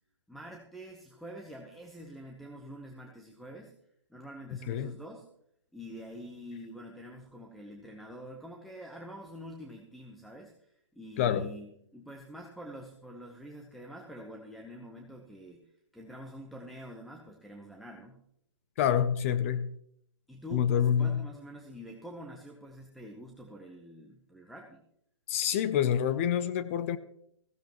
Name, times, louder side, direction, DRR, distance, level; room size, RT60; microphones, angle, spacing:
voice 1, 0.3-3.8 4.1-5.3 5.7-15.6 15.9-18.2 20.3-24.8, equal, ahead, 0.9 m, -46 dB
voice 2, 11.2-11.5 18.8-19.7 20.5-21.2 25.3-27.0, left 9 dB, 30° left, 0.5 m, -27 dB
15.5 x 15.0 x 3.0 m
hypercardioid pair, 145°, 15 cm